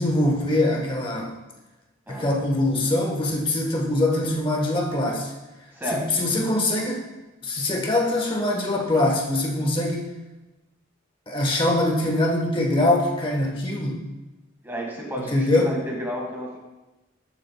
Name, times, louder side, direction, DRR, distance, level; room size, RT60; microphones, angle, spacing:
voice 1, 0.0-1.4 2.1-5.3 5.9-7.1 7.4-10.1 11.3-14.0 15.3-15.7, left 1 dB, 25° left, 0 dB, 1.2 m, -23 dB
voice 2, 5.7-6.1 14.6-16.6, equal, 10° right, -1 dB, 1.7 m, -31 dB
12.5 x 7.4 x 2.3 m, 1.1 s
head